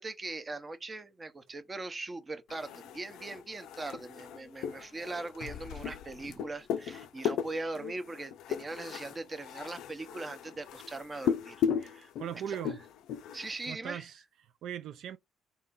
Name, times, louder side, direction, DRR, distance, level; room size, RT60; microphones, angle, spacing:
voice 1, 0.0-12.1 12.5-12.6 13.3-14.1, right 2 dB, 30° right, 0.8 m, -40 dB
sound 1, 2.5-13.7, left 8 dB, 80° left, 0.4 m, -37 dB
voice 2, 12.2-12.8 13.7-15.2, right 9 dB, 75° right, 0.3 m, -39 dB
3.8 x 2.8 x 3.6 m
cardioid pair, 75°, 0 cm